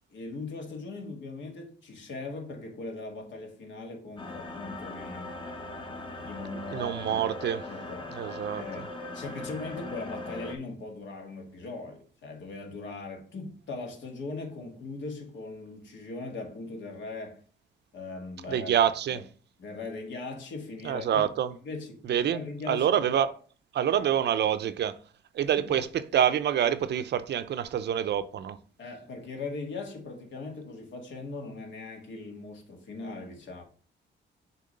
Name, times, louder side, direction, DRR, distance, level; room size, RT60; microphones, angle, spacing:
voice 1, 0.1-5.3 5.9-7.2 7.7-8.2 8.6-17.4 17.9-18.7 19.1-19.2 19.6-21.3 21.6-23.1 24.0-24.1 25.6-25.9 28.8-33.6, left 3 dB, 65° left, 1.9 m, -40 dB
sound 1, 4.2-10.6, left 2 dB, 25° left, 1.0 m, -40 dB
voice 2, 6.7-7.6 8.2-8.6 18.5-19.2 20.8-21.5 22.1-22.4 22.7-23.3 23.7-25.0 25.3-28.6, right 9 dB, 60° right, 0.6 m, -26 dB
6.7 x 3.0 x 5.3 m
cardioid pair, 90°, 20 cm